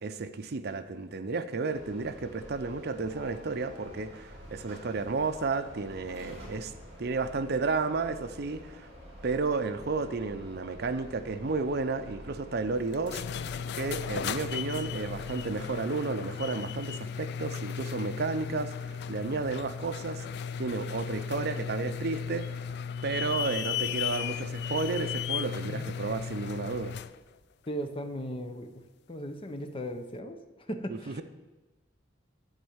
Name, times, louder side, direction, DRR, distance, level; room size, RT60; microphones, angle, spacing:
voice 1, 0.0-6.7 7.0-8.9 9.2-13.2 13.7-20.2 20.6-22.5 23.0-26.9 30.9-31.2, right 4 dB, 60° right, 11 dB, 0.6 m, -32 dB
sound 1, 1.7-15.7, equal, 35° right, 4.0 m, -48 dB
sound 2, 12.9-27.2, left 7 dB, 60° left, 0.4 m, -35 dB
voice 2, 27.7-28.7 29.1-30.4 30.7-31.2, equal, 30° left, 7 dB, 0.8 m, -37 dB
11.5 x 4.4 x 7.9 m, 1.2 s
head